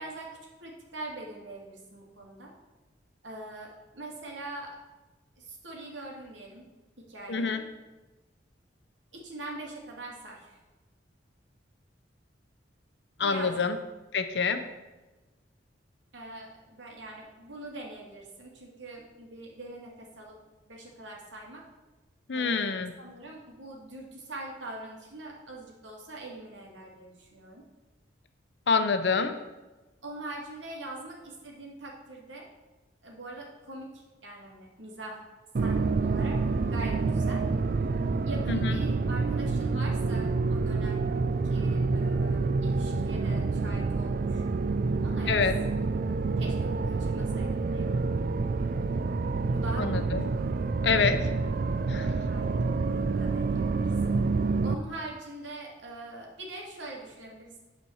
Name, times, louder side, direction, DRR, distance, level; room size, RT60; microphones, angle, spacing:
voice 1, 0.0-2.5 3.2-4.8 5.4-6.6 7.0-7.7 9.1-10.6 13.2-13.7 16.1-20.3 20.7-21.6 22.3-27.6 30.0-32.5 33.0-35.2 35.6-36.4 36.7-37.5 38.3-41.1 41.4-44.4 45.0-45.4 46.4-47.9 49.5-50.1 52.3-54.2 54.6-57.6, right 2 dB, 85° right, -1 dB, 2.2 m, -43 dB
voice 2, 7.3-7.6 13.2-13.8 14.1-14.6 22.3-22.9 28.7-29.4 38.5-38.8 45.3-45.5 49.8-50.3 50.8-51.3 51.9-52.2, left 5 dB, 65° left, 8 dB, 0.7 m, -26 dB
sound 1, 35.6-54.8, right 3 dB, 50° right, 0.4 m, -28 dB
9.2 x 4.4 x 7.1 m, 1.1 s
head